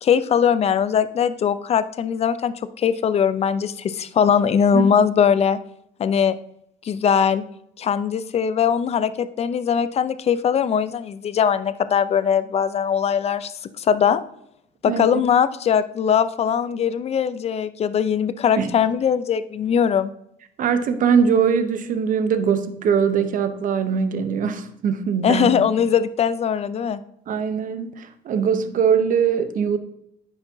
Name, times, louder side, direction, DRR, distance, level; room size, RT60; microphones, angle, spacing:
voice 1, 0.0-5.6 6.0-6.4 6.8-7.4 7.8-14.2 14.8-20.1 25.2-27.0, left 7 dB, 40° left, 14 dB, 0.5 m, -20 dB
voice 2, 14.9-15.2 18.6-18.7 20.6-25.5 27.3-29.8, right 7 dB, 50° right, 10 dB, 0.8 m, -21 dB
9.6 x 5.9 x 2.7 m, 0.75 s
cardioid pair, 110°, 17 cm